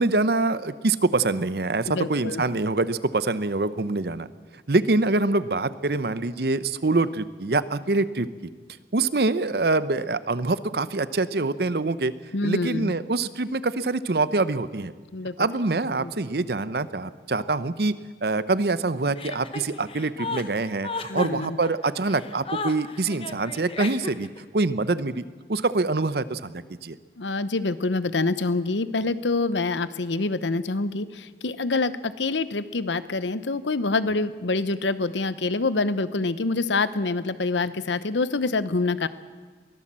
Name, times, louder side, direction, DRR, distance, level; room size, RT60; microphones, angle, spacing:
voice 1, 0.0-4.3 4.7-8.3 8.9-12.1 12.4-14.9 15.4-17.9 18.2-24.3 24.5-25.2 25.5-27.0, right 3 dB, 60° right, 15 dB, 0.8 m, -25 dB
voice 2, 1.9-2.4 12.3-12.9 15.1-15.3 16.0-16.1 21.1-21.6 27.2-39.1, left 3 dB, 90° left, 14 dB, 0.9 m, -26 dB
Chuckle chortle, 19.2-24.4, left 3 dB, 30° left, 1.1 m, -34 dB
23.0 x 17.0 x 7.5 m, 1.5 s
head